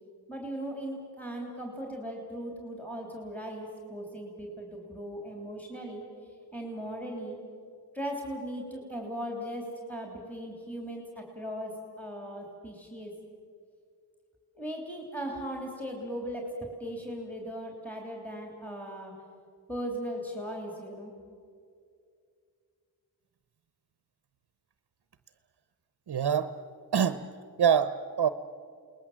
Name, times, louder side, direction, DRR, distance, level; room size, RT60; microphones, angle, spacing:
voice 1, 0.3-6.0 6.5-7.4 7.9-13.1 14.5-19.1 19.7-21.1, equal, 5° left, 0 dB, 3.6 m, -38 dB
voice 2, 26.1-26.5 26.9-27.2 27.6-28.3, right 8 dB, 65° right, 11 dB, 0.9 m, -25 dB
29.5 x 20.5 x 7.5 m, 2.3 s
wide cardioid pair, 125°, 40 cm